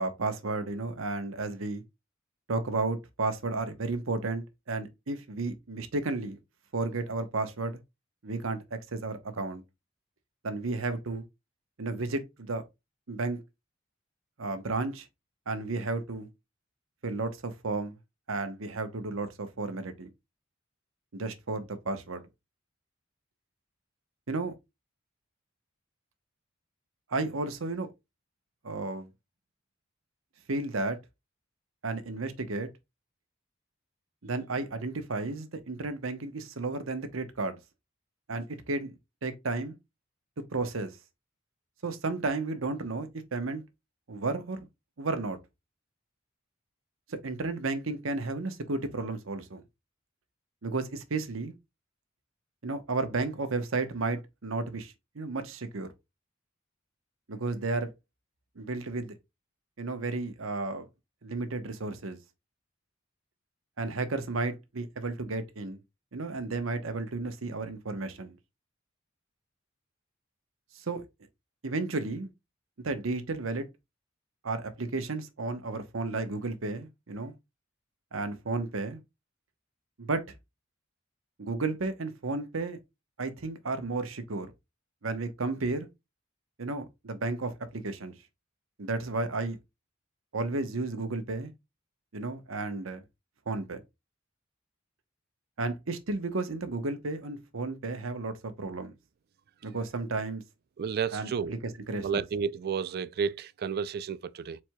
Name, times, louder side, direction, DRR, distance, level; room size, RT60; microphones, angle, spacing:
voice 1, 0.0-1.8 2.5-6.4 6.7-7.8 8.2-9.6 10.4-11.2 11.8-12.6 13.1-13.4 14.4-15.1 15.5-16.3 17.0-18.0 18.3-20.1 21.1-22.2 24.3-24.5 27.1-27.9 28.6-29.1 30.5-31.0 31.8-32.7 34.2-37.6 38.3-38.9 39.2-39.7 40.5-41.0 41.8-43.6 44.1-44.6 45.0-45.4 47.1-49.6 50.6-51.5 52.6-55.9 57.3-57.9 58.6-59.1 59.8-60.9 61.2-62.2 63.8-65.8 66.1-68.4 70.7-71.0 71.6-72.3 72.8-73.7 74.4-77.3 78.1-79.0 80.0-80.2 81.4-82.8 83.2-84.5 85.0-85.9 86.6-88.1 88.8-89.6 90.3-91.5 92.1-93.0 93.5-93.8 95.6-98.9 99.6-100.4 101.1-101.6 101.9-102.2, right 3 dB, 85° right, 0.9 m, -33 dB
voice 2, 100.8-101.5 102.0-104.6, right 6 dB, 50° right, 0.4 m, -31 dB
4.6 x 4.2 x 2.2 m
head